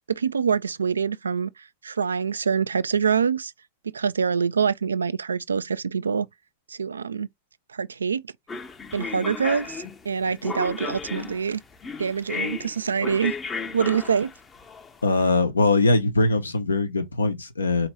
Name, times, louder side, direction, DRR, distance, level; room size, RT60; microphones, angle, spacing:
voice 1, 0.1-1.5 1.8-3.5 3.9-6.3 6.7-7.3 7.7-8.2 8.9-11.6 12.0-13.3 13.7-14.3, right 6 dB, 75° right, 0.3 m, -25 dB
sound 1, 8.5-15.2, left 5 dB, 20° left, 0.6 m, -34 dB
voice 2, 15.0-17.9, left 2 dB, 75° left, 0.8 m, -21 dB
4.3 x 2.8 x 3.1 m
figure-of-eight pair, 90°, 0 cm